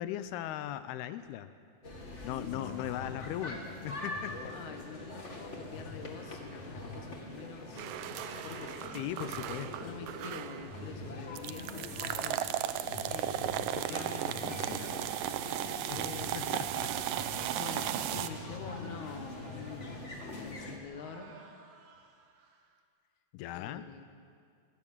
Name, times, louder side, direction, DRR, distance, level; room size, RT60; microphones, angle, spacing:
voice 1, 0.0-1.5 2.2-4.6 8.9-10.0 15.9-16.0 16.3-16.9 23.3-23.9, left 12 dB, 90° left, 12 dB, 2.7 m, -39 dB
sound 1, 1.8-20.8, left 2 dB, 25° left, 1.7 m, -43 dB
voice 2, 4.5-8.0 8.4-9.1 9.8-12.5 13.1-15.7 16.0-16.6 17.3-21.3 23.5-24.1, left 6 dB, 60° left, 5 dB, 2.6 m, -46 dB
sound 2, 6.1-8.1 8.9-9.6 9.9-10.0 16.2-20.5 20.9-22.8, right 5 dB, 50° right, 1.9 m, -53 dB
sound 3, 7.8-10.9 11.4-18.3, right 12 dB, 75° right, 2.1 m, -36 dB
25.5 x 16.5 x 7.4 m, 2.2 s
omnidirectional pair, 4.4 m